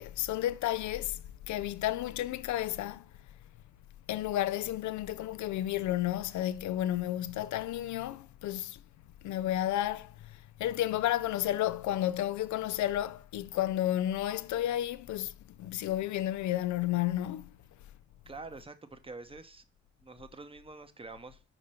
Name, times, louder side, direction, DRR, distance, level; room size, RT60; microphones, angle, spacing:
voice 1, 0.0-3.1 4.1-8.8 9.2-17.5, left 13 dB, 70° left, 0.5 m, -32 dB
voice 2, 18.3-19.6 20.0-21.4, right 3 dB, 20° right, 1.0 m, -46 dB
5.1 x 4.9 x 5.7 m
cardioid pair, 90°, 30 cm